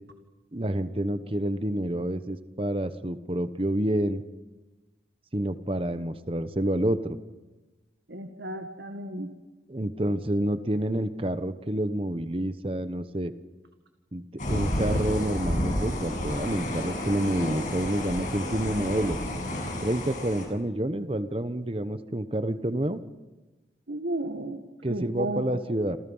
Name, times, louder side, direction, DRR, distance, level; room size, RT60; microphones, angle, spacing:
voice 1, 0.5-4.2 5.3-7.2 9.7-13.3 14.1-19.2 19.8-23.0 24.8-26.0, right 1 dB, 30° right, 11 dB, 1.0 m, -28 dB
voice 2, 8.1-9.3 23.9-24.6 24.9-25.6, right 1 dB, 80° right, 6 dB, 1.9 m, -33 dB
sound 1, 14.4-20.5, left 1 dB, 45° left, 7.1 m, -30 dB
29.0 x 27.5 x 5.6 m, 1.1 s
head